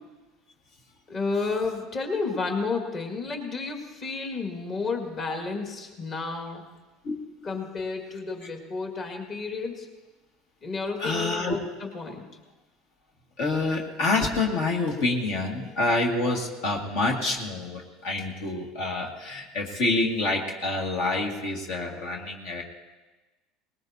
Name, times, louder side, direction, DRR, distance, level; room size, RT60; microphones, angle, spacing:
voice 1, 1.1-6.7 7.4-9.9 10.6-12.3, left 4 dB, 40° left, 2 dB, 2.0 m, -31 dB
voice 2, 11.0-11.6 13.4-22.6, left 2 dB, 70° left, 0 dB, 1.9 m, -27 dB
19.5 x 18.5 x 2.8 m, 1.2 s
supercardioid pair, 105°, 0 cm